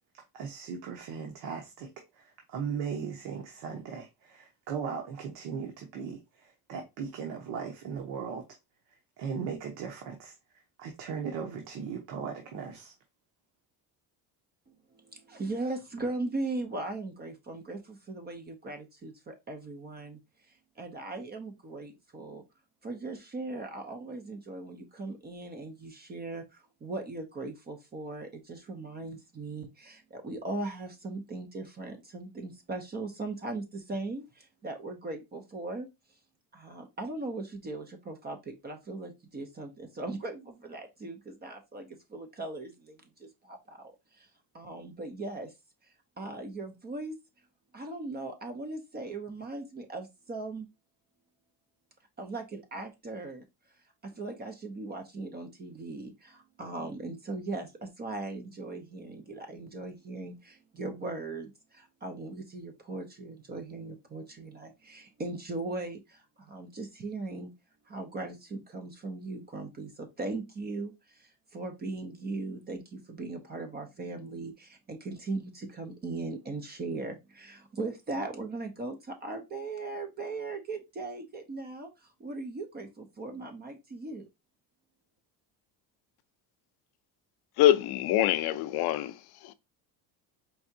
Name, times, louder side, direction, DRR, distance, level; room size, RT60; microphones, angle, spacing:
voice 1, 0.3-8.4 9.2-10.3 10.8-12.9, right 6 dB, 80° right, 1.2 m, -38 dB
voice 2, 14.9-20.2 20.5-22.4 22.8-35.9 36.5-44.3 44.5-45.5 46.2-47.2 47.7-50.7 52.2-53.4 54.0-67.5 67.9-84.3, right 2 dB, 25° right, 0.6 m, -39 dB
voice 3, 87.6-89.5, left 12 dB, 65° left, 0.6 m, -25 dB
4.6 x 3.4 x 2.7 m
cardioid pair, 170°, 42 cm